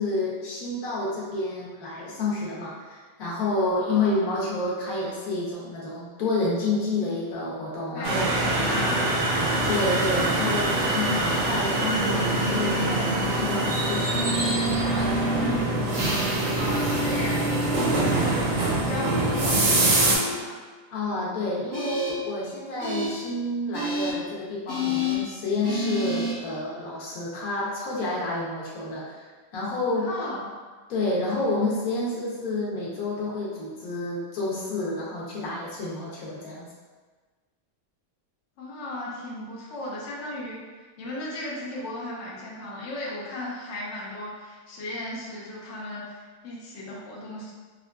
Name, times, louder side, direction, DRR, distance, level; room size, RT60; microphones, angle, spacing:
voice 1, 0.0-8.3 9.7-14.2 20.9-30.1 30.9-36.7, left 2 dB, 90° left, -5 dB, 1.3 m, -29 dB
voice 2, 7.9-9.2 15.4-16.1 16.6-20.6 30.0-30.4 38.6-40.6 41.0-47.5, left 1 dB, 60° left, -5 dB, 0.9 m, -36 dB
sound 1, 8.0-20.2, right 2 dB, 75° right, 1.1 m, -24 dB
sound 2, 12.0-13.2 14.1-15.6 16.6-18.2 18.9-20.3 21.7-22.1 22.8-23.1 23.7-24.1 24.7-25.2 25.6-26.3, equal, 15° left, 0.8 m, -30 dB
4.4 x 2.4 x 2.2 m, 1.4 s
omnidirectional pair, 1.5 m